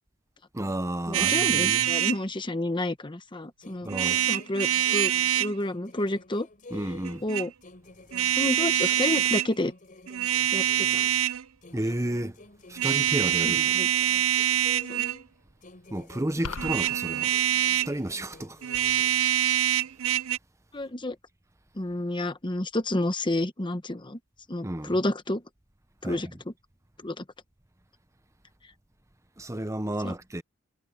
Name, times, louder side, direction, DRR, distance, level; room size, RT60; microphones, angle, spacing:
voice 1, 0.5-1.9 3.8-4.2 6.7-7.2 11.7-12.4 12.7-13.7 15.9-17.4 17.9-18.6 24.6-25.0 26.0-26.4 29.4-30.4, right 1 dB, 15° right, 1.0 m, -32 dB
voice 2, 1.1-3.9 4.3-5.1 5.4-6.5 7.2-7.5 8.4-9.7 10.5-11.1 13.4-13.9 14.9-15.0 20.7-21.2 21.8-24.2 24.5-25.4 26.0-26.3 27.0-27.2 30.0-30.1, left 1 dB, 20° left, 1.1 m, -30 dB
sound 1, 1.1-2.2 3.9-5.5 7.0-7.5 8.1-9.5 10.1-11.4 12.8-15.2 16.6-18.0 18.6-20.4, right 11 dB, 70° right, 0.6 m, -25 dB
sound 2, 3.6-7.3 7.6-11.2 11.6-15.3 15.6-19.2, left 2 dB, 40° left, 5.5 m, -50 dB
sound 3, 16.4-16.9, left 4 dB, 90° left, 1.3 m, -36 dB
head